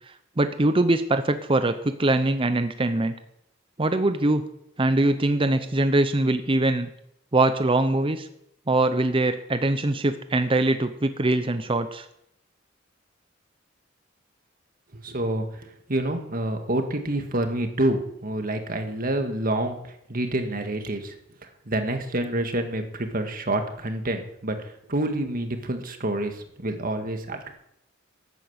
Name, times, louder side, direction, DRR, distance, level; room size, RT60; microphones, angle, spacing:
voice 1, 0.1-3.1 3.8-4.5 4.8-6.9 7.3-8.3 8.7-12.1, right 2 dB, 25° right, 10 dB, 0.7 m, -22 dB
voice 2, 15.0-15.5 15.9-19.8 20.1-21.1 21.7-27.5, right 1 dB, 45° right, 6 dB, 1.9 m, -27 dB
13.0 x 9.1 x 8.0 m, 0.75 s
head